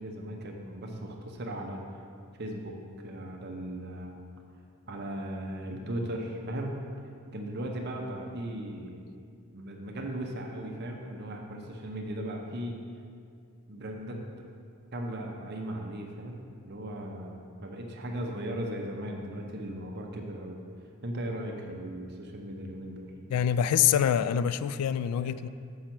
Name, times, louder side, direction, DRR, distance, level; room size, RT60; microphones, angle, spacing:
voice 1, 0.0-2.0 2.4-4.1 4.9-6.7 7.3-9.0 9.5-12.7 13.7-14.2 14.9-20.6 21.0-23.1 25.2-25.3, right 1 dB, 45° right, 1 dB, 0.7 m, -37 dB
voice 2, 23.3-25.5, left 9 dB, 90° left, 16 dB, 0.3 m, -25 dB
6.5 x 5.6 x 5.9 m, 2.3 s
head